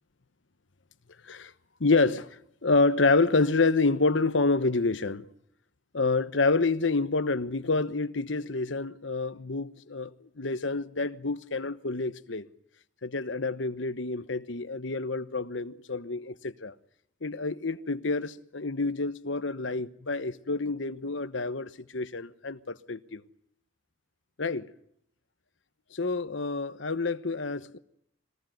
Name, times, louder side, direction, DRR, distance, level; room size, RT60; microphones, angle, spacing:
voice 1, 1.8-2.3 2.6-5.3 5.9-12.5 13.0-16.7 17.2-23.2 24.4-24.7 25.9-27.8, left 3 dB, 75° left, 1.1 m, -28 dB
24.5 x 19.0 x 9.2 m
head